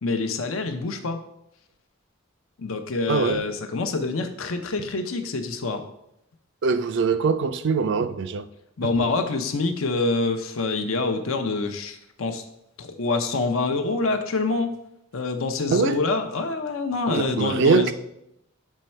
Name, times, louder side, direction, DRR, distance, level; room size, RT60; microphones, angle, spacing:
voice 1, 0.0-1.2 2.6-5.8 8.8-12.4 12.8-14.7 15.1-17.9, left 3 dB, 90° left, 0.7 m, -26 dB
voice 2, 3.1-3.5 6.6-8.5 8.8-8.9 15.7-16.0 17.1-17.9, right 4 dB, 65° right, 0.4 m, -22 dB
7.4 x 3.2 x 4.4 m
head